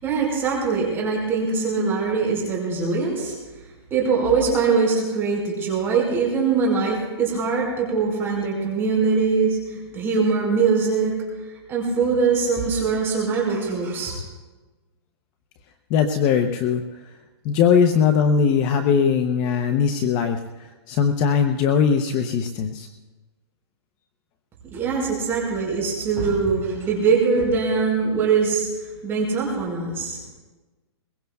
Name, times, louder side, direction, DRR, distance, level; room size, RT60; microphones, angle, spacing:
voice 1, 0.0-3.3 3.9-11.2 11.7-14.2 24.7-28.7 29.0-30.2, right 5 dB, 15° right, -3 dB, 5.1 m, -22 dB
voice 2, 15.9-16.8 17.4-22.9, left 6 dB, 25° left, 6 dB, 0.7 m, -20 dB
22.5 x 21.5 x 2.3 m, 1.2 s
hypercardioid pair, 160°, 14 cm